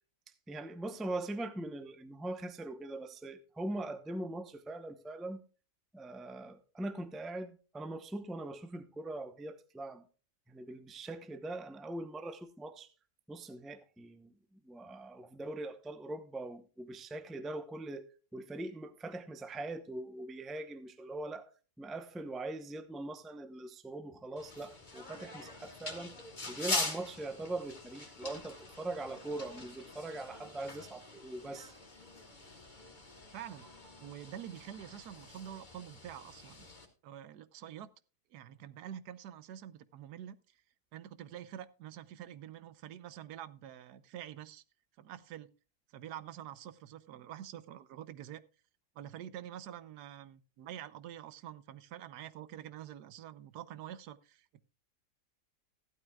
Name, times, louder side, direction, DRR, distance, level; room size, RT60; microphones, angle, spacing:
voice 1, 0.5-5.4 5.9-10.0 10.5-12.9 13.3-18.1 18.3-21.5 21.8-26.1 26.5-31.7, right 2 dB, ahead, 0.4 m, -41 dB
sound 1, 24.4-36.9, left 2 dB, 30° left, 2.1 m, -43 dB
voice 2, 33.3-33.7 34.0-36.7 37.0-37.9 38.3-40.6 40.9-44.6 45.0-45.5 45.9-48.4 49.0-54.6, right 11 dB, 80° right, 1.3 m, -47 dB
15.5 x 12.0 x 2.3 m
omnidirectional pair, 1.7 m